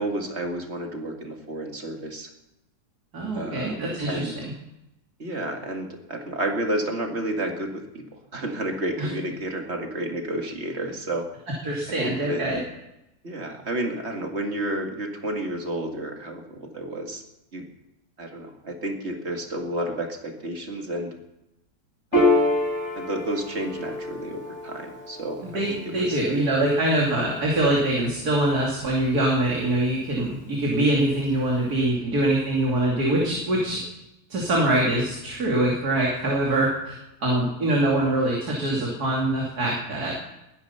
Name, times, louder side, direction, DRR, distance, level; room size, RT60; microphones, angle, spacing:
voice 1, 0.0-2.3 3.3-4.4 5.2-8.1 8.3-11.3 12.0-12.4 13.2-17.2 17.5-17.7 18.2-21.1 22.1-22.5 22.9-26.2, right 1 dB, 45° right, 3 dB, 2.4 m, -31 dB
voice 2, 3.1-4.5 9.0-9.1 11.6-12.6 25.5-33.8 34.3-40.1, right 1 dB, 85° right, -3 dB, 3.3 m, -24 dB
Piano, 22.1-29.0, left 2 dB, 55° left, 2.8 m, -28 dB
20.5 x 10.0 x 5.7 m, 0.90 s
omnidirectional pair, 1.6 m